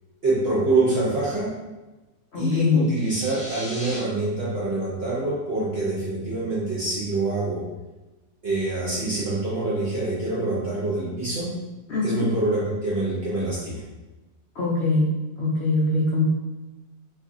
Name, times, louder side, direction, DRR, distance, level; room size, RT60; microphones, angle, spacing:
voice 1, 0.2-1.6 2.4-7.6 8.4-11.6 12.0-13.8, right 2 dB, 55° right, -7 dB, 0.7 m, -25 dB
voice 2, 2.3-2.9 11.9-12.3 14.6-15.1 15.4-16.3, left 3 dB, 75° left, -5 dB, 0.6 m, -22 dB
sound 1, 2.8-4.0, left 1 dB, 10° left, 0.5 m, -38 dB
2.5 x 2.4 x 3.7 m, 1.1 s
omnidirectional pair, 1.8 m